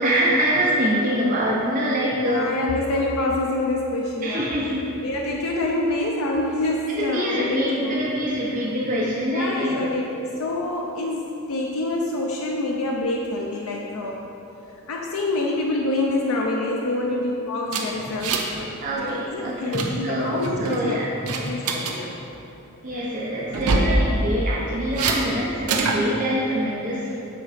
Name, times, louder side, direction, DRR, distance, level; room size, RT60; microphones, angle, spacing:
voice 1, 0.0-2.5 4.2-4.8 7.0-9.8 18.8-21.4 22.8-27.2, equal, 35° right, -6 dB, 0.7 m, -24 dB
voice 2, 2.2-4.5 5.0-8.0 9.3-14.3 14.9-18.7 19.0-21.0 21.5-22.1, left 2 dB, 75° left, -1 dB, 0.5 m, -26 dB
sound 1, 17.7-18.6 18.9-19.1 19.4-19.9 20.4-20.8 21.3-22.0 23.5-24.0 25.0-25.2 25.7-26.0, right 4 dB, 80° right, 0.7 m, -24 dB
7.7 x 3.9 x 5.0 m, 3.0 s
head